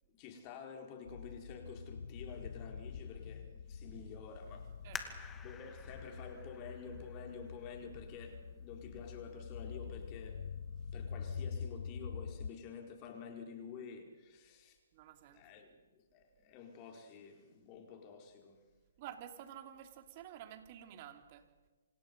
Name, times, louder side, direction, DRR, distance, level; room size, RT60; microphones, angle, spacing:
voice 1, 0.1-4.7 5.4-10.4 10.9-14.8 15.3-18.6, left 5 dB, 30° left, 3 dB, 4.6 m, -50 dB
sound 1, 1.1-12.5, left 6 dB, 70° left, 0.7 m, -46 dB
sound 2, 2.5-11.6, right 2 dB, 10° right, 2.0 m, -64 dB
sound 3, 4.9-8.3 8.9-9.0 9.6-10.0 10.4-10.5, left 5 dB, 15° left, 2.3 m, -50 dB
voice 2, 14.9-15.5 19.0-21.5, right 10 dB, 40° right, 6 dB, 3.1 m, -50 dB
27.5 x 27.0 x 5.5 m, 1.2 s
hypercardioid pair, 140°, 0 cm